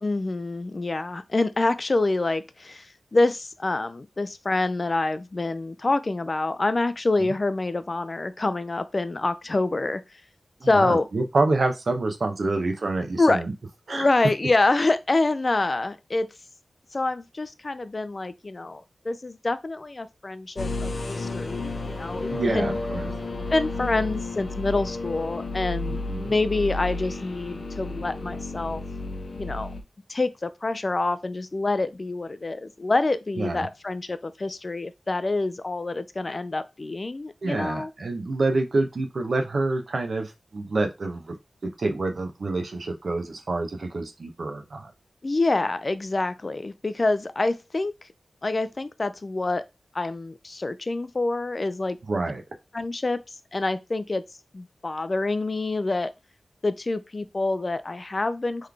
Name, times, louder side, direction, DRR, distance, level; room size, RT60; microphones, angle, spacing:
voice 1, 0.0-10.0 10.6-11.1 13.2-13.4 13.9-16.3 16.9-22.8 23.5-28.8 29.3-29.7 30.1-37.9 45.2-47.9 48.4-49.6 49.9-52.0 52.7-53.2 53.5-54.2 54.5-56.1 56.6-58.7, left 2 dB, 40° left, 0.3 m, -26 dB
voice 2, 10.6-13.5 13.9-14.1 22.3-23.1 26.1-26.3 33.4-33.7 37.4-41.3 41.8-44.9 52.1-52.4, right 2 dB, 60° right, 0.8 m, -27 dB
sound 1, 20.6-29.8, left 2 dB, 60° left, 0.8 m, -32 dB
3.9 x 3.2 x 3.3 m
wide cardioid pair, 105°, 0 cm